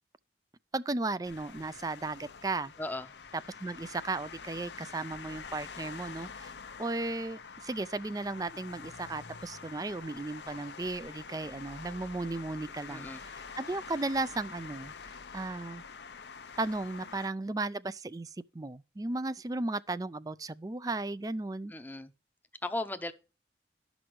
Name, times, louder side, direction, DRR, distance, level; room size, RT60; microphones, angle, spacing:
voice 1, 0.7-2.7 3.6-6.5 6.8-13.1 13.6-15.8 16.6-21.7, right 2 dB, 20° right, 0.4 m, -35 dB
sound 1, 1.2-17.3, left 5 dB, 80° left, 0.7 m, -46 dB
voice 2, 2.8-3.1 12.9-13.2 21.7-22.1 22.6-23.1, left 2 dB, 10° left, 0.7 m, -36 dB
12.0 x 6.1 x 4.7 m
head